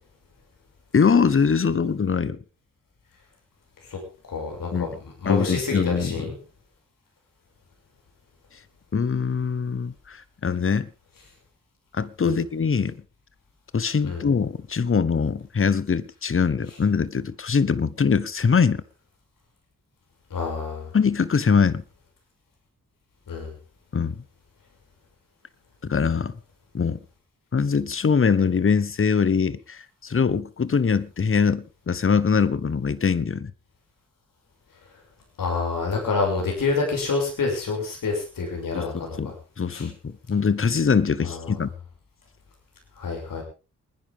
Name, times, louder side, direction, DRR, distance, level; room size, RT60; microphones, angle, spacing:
voice 1, 0.9-2.4 4.7-4.9 5.2-6.2 8.9-10.9 11.9-13.0 13.7-18.8 20.9-21.8 23.9-24.1 25.8-26.3 26.7-27.0 27.5-33.5 38.7-39.3 39.6-41.7, left 6 dB, 40° left, 1.1 m, -22 dB
voice 2, 4.3-4.9 5.2-6.4 12.2-12.4 14.0-14.3 20.3-20.9 23.3-23.5 35.4-39.2 39.7-39.9 41.2-41.6 43.0-43.4, left 4 dB, 80° left, 6.4 m, -27 dB
28.5 x 10.0 x 3.6 m
wide cardioid pair, 90°, 33 cm